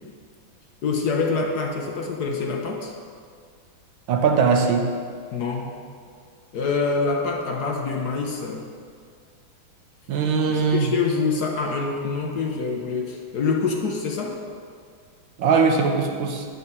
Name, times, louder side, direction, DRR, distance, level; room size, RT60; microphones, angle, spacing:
voice 1, 0.8-2.9 5.3-5.8 6.5-8.7 10.5-14.4, left 4 dB, 60° left, 1 dB, 1.3 m, -25 dB
voice 2, 4.1-4.9 10.1-10.9 15.4-16.5, right 5 dB, 70° right, 4 dB, 1.5 m, -20 dB
9.8 x 5.5 x 7.3 m, 2.1 s
omnidirectional pair, 2.2 m